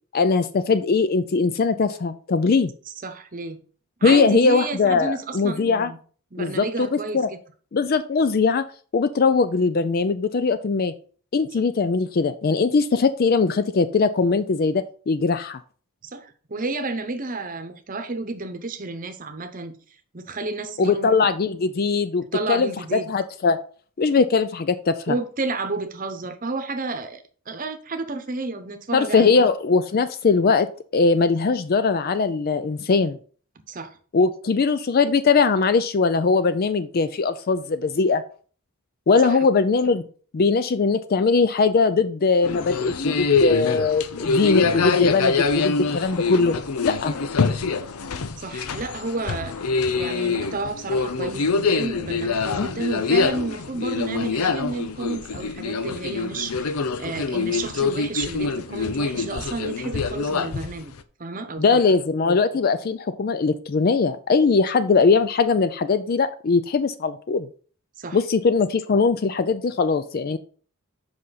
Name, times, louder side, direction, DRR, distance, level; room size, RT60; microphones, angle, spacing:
voice 1, 0.1-2.7 4.0-5.9 6.4-7.3 7.7-8.6 8.9-10.9 11.3-15.6 20.8-23.6 24.0-25.1 28.9-30.7 30.9-33.2 34.1-38.2 39.1-40.0 40.3-46.5 46.8-47.2 52.6-52.7 61.6-67.5 68.1-70.4, left 4 dB, 45° left, 0.4 m, -20 dB
voice 2, 3.0-3.6 4.0-6.0 6.3-7.4 16.0-19.7 20.1-21.2 22.3-23.1 25.1-29.4 33.7-34.0 39.2-39.4 48.4-49.6 50.0-56.7 57.0-60.9 61.2-61.8 68.0-68.2, right 3 dB, 40° right, 0.9 m, -31 dB
sound 1, 42.4-61.0, left 4 dB, 90° left, 0.6 m, -25 dB
7.8 x 5.5 x 4.0 m
head